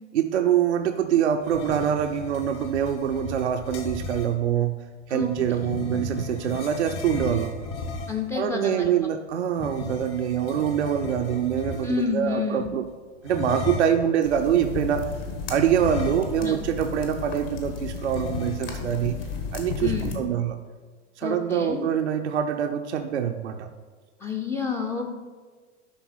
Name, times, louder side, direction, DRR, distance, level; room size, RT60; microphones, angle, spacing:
voice 1, 0.1-4.8 5.1-7.5 8.3-12.8 13.2-15.1 15.5-19.2 19.5-20.6 21.2-23.7, right 9 dB, 70° right, 6 dB, 0.6 m, -25 dB
sound 1, 1.4-4.3 5.2-8.3 9.5-12.2 13.2-14.1 15.7-16.6 16.9-17.0 18.0-18.9, left 3 dB, 35° left, 1.3 m, -35 dB
voice 2, 5.1-5.8 8.1-9.0 11.8-12.7 16.4-16.9 19.8-20.3 21.2-21.9 24.2-25.1, left 5 dB, 10° left, 3 dB, 0.5 m, -30 dB
sound 2, 14.2-20.1, left 4 dB, 55° left, 1.7 m, -33 dB
11.0 x 4.0 x 5.7 m, 1.4 s
figure-of-eight pair, 95°, 36 cm